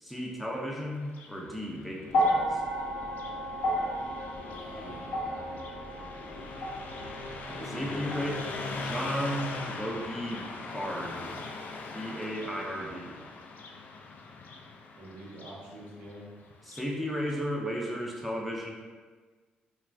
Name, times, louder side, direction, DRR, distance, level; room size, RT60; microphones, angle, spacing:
voice 1, 0.0-2.6 7.7-8.4 8.7-10.5 10.7-11.3 11.9-13.2 16.6-18.7, equal, ahead, -2 dB, 0.6 m, -34 dB
Car passing by, 1.0-17.0, left 3 dB, 65° left, 0.3 m, -41 dB
sound 1, 2.1-10.4 11.5-11.6, equal, 85° left, 0.7 m, -33 dB
voice 2, 4.5-5.7 7.5-8.4 15.0-16.3, right 1 dB, 75° right, -4 dB, 0.7 m, -45 dB
2.4 x 2.3 x 3.1 m, 1.4 s
cardioid pair, 70°, 3 cm